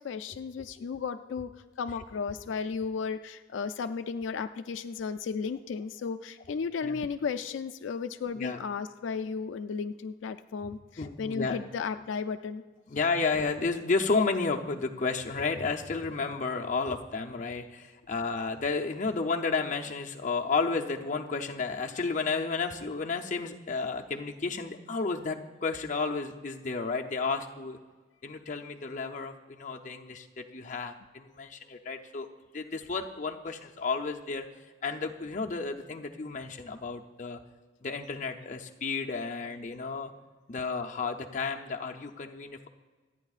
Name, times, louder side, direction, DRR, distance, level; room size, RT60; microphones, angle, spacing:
voice 1, 0.0-1.5 1.8-12.6, left 5 dB, 80° left, 10 dB, 0.4 m, -34 dB
voice 2, 11.0-11.6 12.9-27.8 28.2-32.3 32.5-34.5 34.8-37.4 37.8-40.1 40.5-42.7, left 4 dB, 40° left, 2 dB, 0.7 m, -32 dB
25.0 x 9.1 x 2.4 m, 1.4 s
head